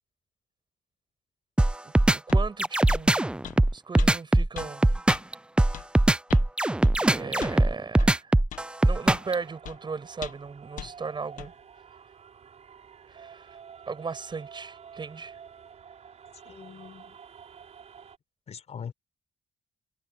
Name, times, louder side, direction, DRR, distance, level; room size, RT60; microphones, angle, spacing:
sound 1, 1.6-9.3, right 1 dB, 5° right, 0.5 m, -21 dB
voice 1, 1.8-3.2 3.7-5.0 7.0-8.3 8.8-11.5 13.1-13.6 13.9-15.3, right 5 dB, 35° right, 7.9 m, -37 dB
sound 2, 2.3-2.4 2.9-3.1 3.4-3.6 4.0-4.1 4.6-4.7 5.1-5.2 5.7-5.9 6.3-6.5 6.8-7.0 7.4-7.6 8.0-8.1 8.5-8.7 9.1-9.3 9.7-9.8 10.2-10.5 10.8-10.9 11.4-11.5, left 11 dB, 85° left, 1.5 m, -40 dB
sound 3, 8.8-18.2, right 7 dB, 60° right, 5.3 m, -49 dB
voice 2, 16.4-17.2 18.5-18.9, left 7 dB, 55° left, 4.3 m, -41 dB
cardioid pair, 100°, 13 cm